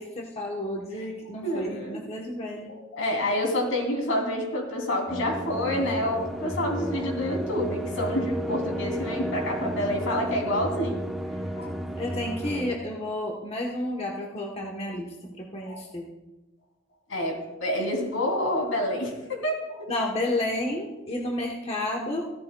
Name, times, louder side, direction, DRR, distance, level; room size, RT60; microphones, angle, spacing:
voice 1, 0.0-2.7 11.9-16.1 17.8-17.9 19.9-22.3, left 1 dB, 30° left, 0 dB, 1.0 m, -31 dB
voice 2, 1.4-2.0 2.7-11.0 11.5-11.7 15.7-15.8 17.1-19.9, left 1 dB, 75° left, 0 dB, 2.9 m, -28 dB
sound 1, 5.1-12.8, equal, ahead, 0.9 m, -33 dB
16.0 x 14.0 x 2.2 m, 1.1 s
head